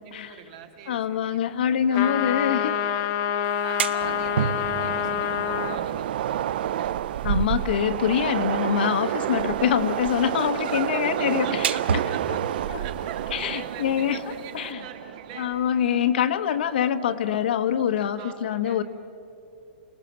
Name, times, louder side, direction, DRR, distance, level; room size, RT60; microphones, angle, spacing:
voice 1, 0.3-1.4 1.9-3.1 3.6-7.0 9.5-9.9 10.3-15.8 18.2-18.8, right 8 dB, 40° right, 5 dB, 2.7 m, -42 dB
voice 2, 0.9-2.8 7.2-11.8 12.7-12.8 13.3-14.2 14.5-14.8 15.3-18.8, left 9 dB, 65° left, 10 dB, 1.3 m, -25 dB
sound 1, 1.9-5.8, left 9 dB, 30° left, 1.1 m, -27 dB
sound 2, 3.4-14.7, right 7 dB, 85° right, 1.0 m, -35 dB
Train, 4.0-16.3, right 11 dB, 60° right, 0.5 m, -30 dB
30.0 x 20.0 x 7.5 m, 2.8 s
supercardioid pair, 170°, 6 cm